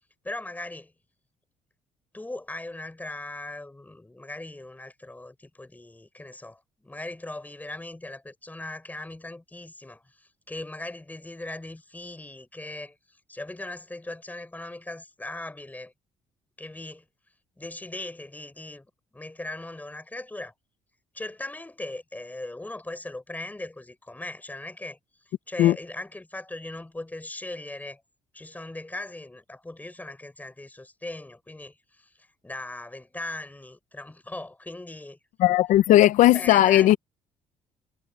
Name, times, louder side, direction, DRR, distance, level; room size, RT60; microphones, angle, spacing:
voice 1, 0.2-0.9 2.1-13.0 13.3-15.9 16.6-17.0 17.6-20.5 21.1-25.0 25.5-28.0 28.3-32.1 32.4-35.2 36.3-36.9, left 2 dB, 10° left, 4.6 m, -39 dB
voice 2, 35.4-37.0, left 14 dB, 75° left, 0.6 m, -17 dB
supercardioid pair, 75°, 13 cm